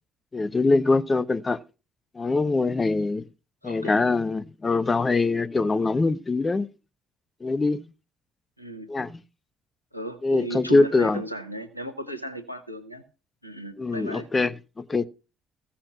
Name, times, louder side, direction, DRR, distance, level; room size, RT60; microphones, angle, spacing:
voice 1, 0.3-1.6 2.1-3.3 3.6-6.7 7.4-7.9 8.9-9.2 10.2-11.2 13.8-15.1, left 3 dB, 25° left, 0.6 m, -23 dB
voice 2, 3.6-4.0 8.6-8.9 9.9-13.0 13.4-14.3, right 1 dB, 90° left, 0.8 m, -36 dB
15.0 x 5.8 x 6.3 m
figure-of-eight pair, 50°, 0 cm